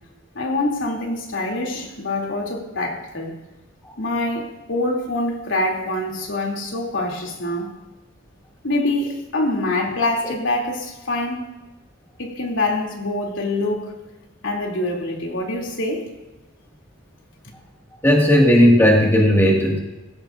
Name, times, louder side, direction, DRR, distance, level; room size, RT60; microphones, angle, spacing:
voice 1, 0.3-3.3 4.0-7.7 8.6-11.5 12.2-13.9 14.4-16.1, left 2 dB, 80° left, 0 dB, 2.8 m, -25 dB
voice 2, 18.0-19.8, equal, 10° left, -1 dB, 2.0 m, -15 dB
18.5 x 16.0 x 2.6 m, 1.1 s
head